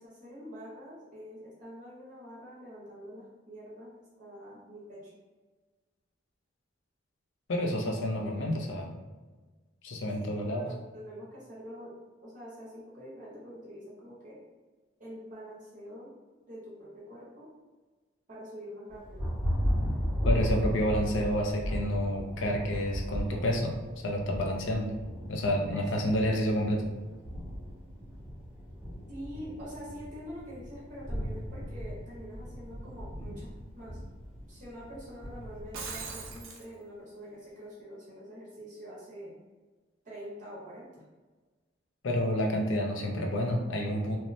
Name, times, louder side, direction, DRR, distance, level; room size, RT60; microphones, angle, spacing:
voice 1, 0.0-5.1 10.2-14.4 15.0-16.1 16.5-17.5 18.3-19.3 25.7-26.1 29.1-34.0 34.5-39.3 40.0-41.0, equal, 40° right, -8 dB, 0.8 m, -45 dB
voice 2, 7.5-8.9 9.8-10.7 20.2-23.8 24.0-24.9 25.3-26.9 42.0-44.2, equal, 70° left, 1 dB, 0.5 m, -29 dB
Thunder, 18.9-36.4, equal, 5° right, 0.9 m, -36 dB
Shatter, 35.6-36.7, right 5 dB, 85° right, 0.5 m, -40 dB
3.0 x 2.1 x 2.5 m, 1.3 s
head